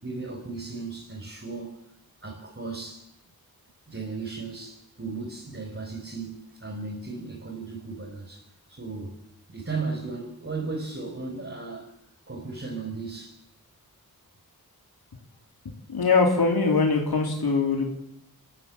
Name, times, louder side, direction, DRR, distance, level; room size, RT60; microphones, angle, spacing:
voice 1, 0.0-1.8 2.2-3.1 3.9-9.2 9.5-11.9 12.3-13.4, right 3 dB, 35° right, -2 dB, 5.5 m, -36 dB
voice 2, 15.9-17.9, left 4 dB, 75° left, 2 dB, 3.7 m, -22 dB
26.5 x 14.5 x 9.0 m, 0.84 s
wide cardioid pair, 65°, 38 cm